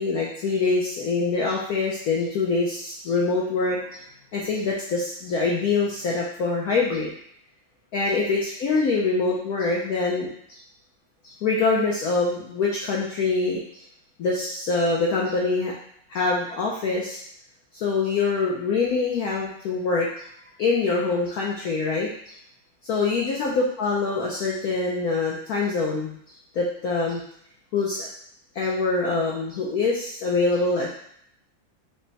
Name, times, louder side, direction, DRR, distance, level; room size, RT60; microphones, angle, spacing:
voice 1, 0.0-4.0 4.3-7.1 7.9-10.6 11.2-13.8 14.2-15.7 16.1-17.2 17.7-20.2 20.6-22.3 22.8-26.2 26.5-27.2 27.7-28.1 28.5-30.9, left 3 dB, 65° left, -3 dB, 1.0 m, -24 dB
5.3 x 2.3 x 4.0 m, 0.69 s
omnidirectional pair, 2.2 m